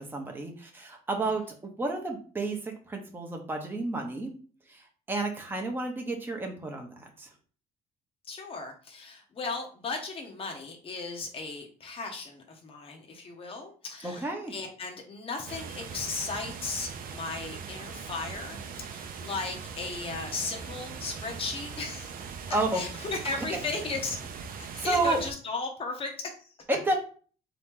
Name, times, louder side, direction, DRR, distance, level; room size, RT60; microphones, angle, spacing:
voice 1, 0.0-4.3 4.7-7.3 14.0-14.5 22.5-22.8 23.4-23.5 24.8-25.2 26.7-26.9, right 2 dB, 10° right, 2 dB, 0.8 m, -31 dB
voice 2, 8.2-26.5, left 3 dB, 35° left, 1 dB, 0.9 m, -36 dB
sound 1, 15.5-25.3, right 6 dB, 55° right, 0.6 m, -40 dB
3.8 x 2.9 x 3.6 m, 0.41 s
cardioid pair, 110°, 17 cm